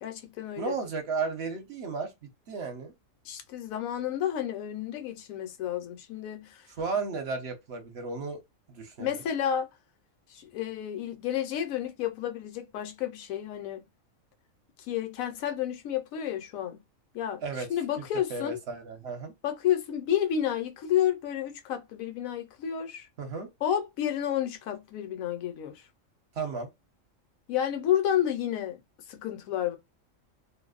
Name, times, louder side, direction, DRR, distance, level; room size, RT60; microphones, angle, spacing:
voice 1, 0.0-0.8 3.2-6.7 9.0-9.7 10.3-13.8 14.9-16.8 17.1-17.4 17.7-18.6 19.4-23.1 23.6-25.8 27.5-28.8 29.1-29.8, left 10 dB, 85° left, 1.0 m, -30 dB
voice 2, 0.6-2.1 2.5-2.9 6.8-8.4 8.7-9.2 17.4-17.7 18.0-18.1 18.3-19.3 23.2-23.5 26.3-26.7, right 4 dB, 60° right, 0.9 m, -34 dB
2.6 x 2.0 x 2.4 m
omnidirectional pair, 1.4 m